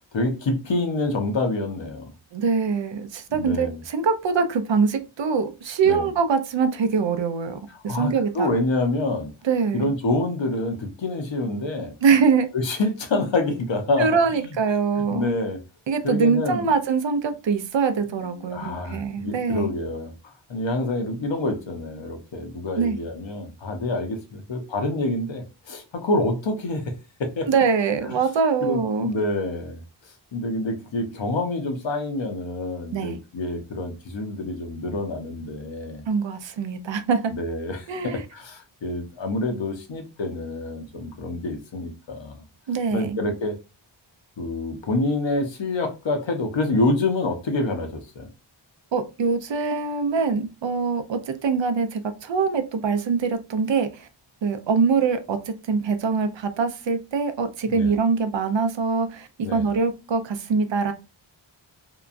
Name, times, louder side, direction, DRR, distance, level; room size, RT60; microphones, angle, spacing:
voice 1, 0.1-2.1 3.3-3.8 5.8-6.1 7.7-9.3 9.7-11.9 12.5-14.1 14.4-14.6 15.0-15.6 16.0-16.6 18.1-26.9 27.2-27.5 28.1-28.2 28.6-29.8 30.3-36.0 37.3-42.4 42.9-43.6 44.4-48.3 57.7-57.9 59.4-59.7, left 2 dB, 65° left, 0.8 m, -27 dB
voice 2, 2.3-7.6 7.8-8.5 9.4-9.8 12.0-12.5 14.0-15.4 15.9-19.7 22.8-23.0 27.5-29.1 32.9-33.2 36.1-37.3 37.9-38.2 42.7-43.2 48.9-54.1 54.4-60.9, right 5 dB, 65° right, 0.5 m, -23 dB
2.8 x 2.2 x 2.4 m
wide cardioid pair, 70°, 49 cm